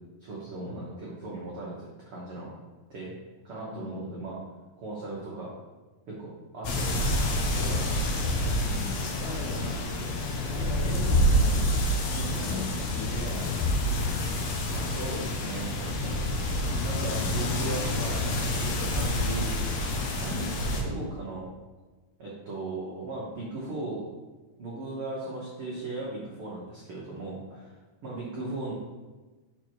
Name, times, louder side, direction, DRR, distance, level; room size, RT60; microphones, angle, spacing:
voice 1, 0.2-1.7 2.1-2.5 2.9-3.1 3.4-4.4 4.8-5.5 6.1-8.3 12.1-12.4 14.7-16.2 16.8-19.5 20.2-21.5 22.2-24.0 24.6-27.8 28.0-28.7, right 2 dB, 75° right, -5 dB, 1.2 m, -37 dB
sound 1, 6.6-20.8, left 1 dB, 85° left, 1.5 m, -28 dB
voice 2, 8.6-9.8 10.3-11.6 12.0-12.7 12.9-13.9 17.0-17.3 20.6-20.7 27.5-27.6, left 3 dB, 60° left, -5 dB, 2.6 m, -39 dB
5.9 x 4.6 x 4.5 m, 1.2 s
omnidirectional pair, 4.2 m